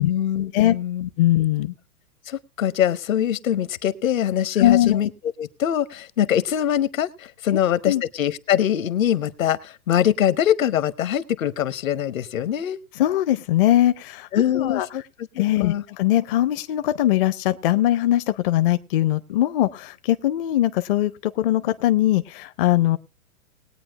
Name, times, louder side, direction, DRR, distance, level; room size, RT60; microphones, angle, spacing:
voice 1, 0.0-1.1 2.3-5.1 5.4-12.8 14.3-15.0 15.6-15.8, left 10 dB, 65° left, 15 dB, 1.0 m, -23 dB
voice 2, 1.2-1.7 4.6-5.0 7.8-8.0 12.9-14.3 14.5-14.9 15.4-23.0, left 13 dB, 40° left, 12 dB, 0.6 m, -21 dB
20.5 x 8.7 x 2.3 m, 0.34 s
figure-of-eight pair, 115°, 43 cm